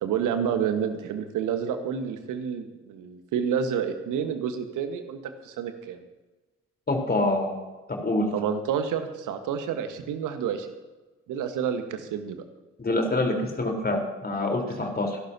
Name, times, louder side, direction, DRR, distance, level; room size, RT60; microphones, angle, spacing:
voice 1, 0.0-6.0 8.3-10.7 11.3-12.4, right 7 dB, 60° right, 7 dB, 1.7 m, -29 dB
voice 2, 6.9-7.6 7.9-8.3 12.8-15.2, left 2 dB, 25° left, 2 dB, 4.4 m, -26 dB
26.5 x 12.0 x 2.9 m, 1.2 s
figure-of-eight pair, 45°, 35 cm